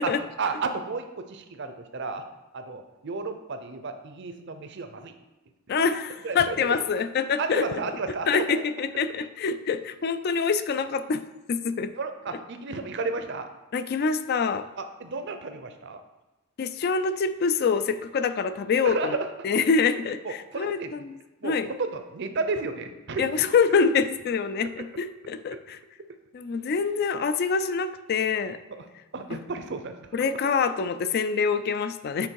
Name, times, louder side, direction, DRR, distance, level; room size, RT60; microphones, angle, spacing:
voice 1, 0.4-2.2 2.5-5.1 5.8-5.9 6.2-6.6 7.4-8.4 11.9-13.5 14.8-16.0 18.8-19.3 20.2-20.9 21.4-21.5 21.8-23.2 29.1-30.4, right 4 dB, 55° right, 8 dB, 0.6 m, -32 dB
voice 2, 5.7-7.8 8.3-11.2 11.5-11.9 12.3-12.4 13.7-14.7 16.6-21.2 21.4-21.7 23.2-25.8 26.3-28.6 29.3-29.4 30.1-32.3, left 5 dB, 45° left, 12 dB, 0.3 m, -26 dB
7.9 x 3.5 x 4.6 m, 1.1 s
head